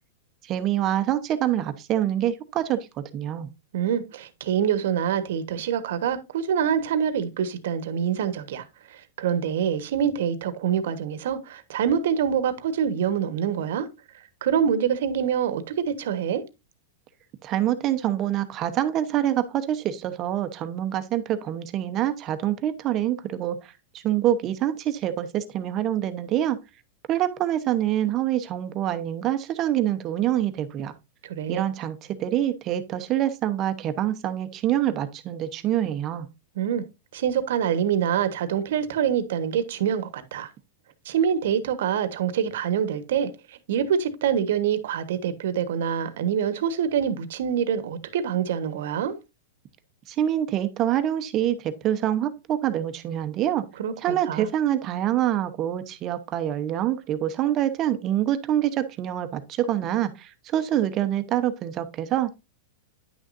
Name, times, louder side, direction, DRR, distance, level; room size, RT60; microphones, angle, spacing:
voice 1, 0.5-2.9 3.1-3.5 17.4-23.7 24.0-26.6 27.1-30.9 31.5-36.3 50.1-53.6 54.0-62.3, right 11 dB, 30° right, 0.9 m, -26 dB
voice 2, 3.7-8.6 8.9-13.9 14.4-16.4 31.2-31.6 36.5-36.8 37.1-40.5 41.0-49.1 53.8-54.5, right 8 dB, 70° right, 1.2 m, -25 dB
10.0 x 6.3 x 2.6 m
supercardioid pair, 155°, 0 cm